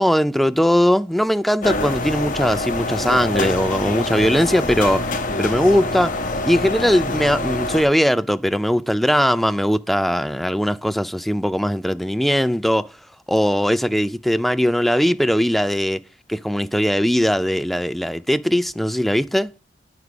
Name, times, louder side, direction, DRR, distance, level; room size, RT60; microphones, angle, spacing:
voice 1, 0.0-5.1 5.4-6.2 6.4-12.9 13.3-16.0 16.3-19.5, equal, ahead, 0.3 m, -19 dB
sound 1, 1.6-7.8, left 2 dB, 45° left, 0.9 m, -25 dB
9.9 x 4.7 x 4.9 m
head